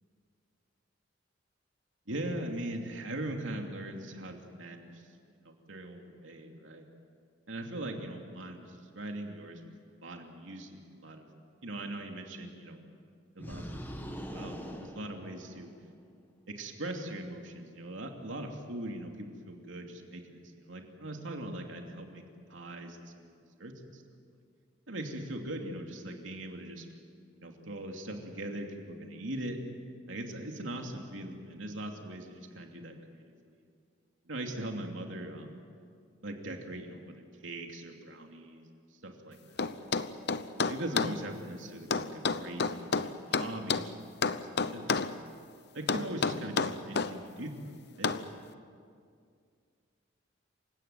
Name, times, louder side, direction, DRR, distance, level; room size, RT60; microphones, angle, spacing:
voice 1, 2.1-5.0 5.3-6.9 7.5-9.6 10.0-11.3 11.6-12.8 13.4-14.0 14.3-15.7 16.5-22.2 22.5-23.0 23.2-23.3 23.6-24.0 24.9-26.9 27.4-29.6 30.1-33.3 34.3-35.6 36.2-38.7 39.0-39.9 40.7-44.4 44.7-45.3 45.7-48.2, right 1 dB, 80° right, 3 dB, 2.8 m, -40 dB
sound 1, 13.4-15.9, equal, 10° left, 1.8 m, -42 dB
sound 2, 39.6-41.2 41.9-43.9 44.2-45.1 45.9-47.1 48.0-48.3, left 4 dB, 55° left, 0.8 m, -29 dB
28.0 x 16.5 x 9.3 m, 2.2 s
head